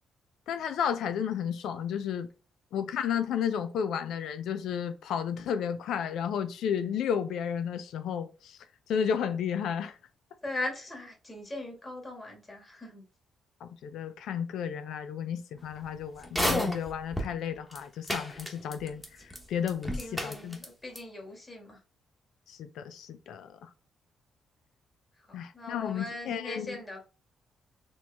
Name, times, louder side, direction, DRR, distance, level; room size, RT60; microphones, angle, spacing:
voice 1, 0.5-2.3 2.7-8.6 8.9-10.0 13.6-20.6 22.5-23.7 25.3-26.8, left 8 dB, 80° left, 0.5 m, -32 dB
voice 2, 10.4-13.0 20.0-21.8 25.3-27.0, left 2 dB, 20° left, 2.0 m, -39 dB
sound 1, 16.2-17.3 17.7-17.8 18.1-19.1 19.3-19.4 19.7-20.7 21.0-21.1, equal, 5° left, 1.2 m, -30 dB
4.3 x 3.1 x 3.5 m
cardioid pair, 90°, 0 cm